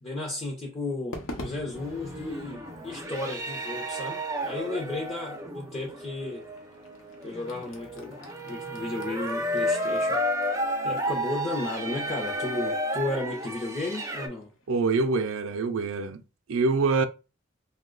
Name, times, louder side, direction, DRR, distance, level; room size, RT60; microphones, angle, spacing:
voice 1, 0.0-6.4 7.2-10.2 10.8-14.5, left 2 dB, 30° left, 0.7 m, -34 dB
Crowd / Fireworks, 1.1-15.5, left 1 dB, 75° left, 0.8 m, -48 dB
sound 1, 1.7-14.3, equal, 15° right, 0.5 m, -32 dB
voice 2, 14.7-16.2 16.5-17.1, right 3 dB, 75° right, 0.4 m, -25 dB
2.8 x 2.2 x 3.7 m
head